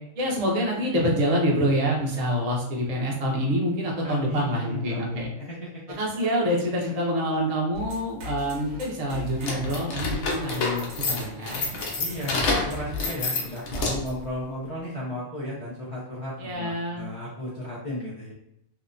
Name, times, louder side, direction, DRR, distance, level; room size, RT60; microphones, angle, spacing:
voice 1, 0.1-5.3 5.9-11.6 16.4-17.1, equal, 40° right, -2 dB, 0.5 m, -26 dB
voice 2, 4.0-5.6 5.9-6.0 12.0-18.3, left 1 dB, 55° left, -8 dB, 0.3 m, -34 dB
sound 1, 7.7-13.1, left 3 dB, 65° right, 0.8 m, -39 dB
opening doors, 9.4-14.2, left 3 dB, 85° left, 1.0 m, -28 dB
2.7 x 2.1 x 2.5 m, 0.82 s
omnidirectional pair, 1.4 m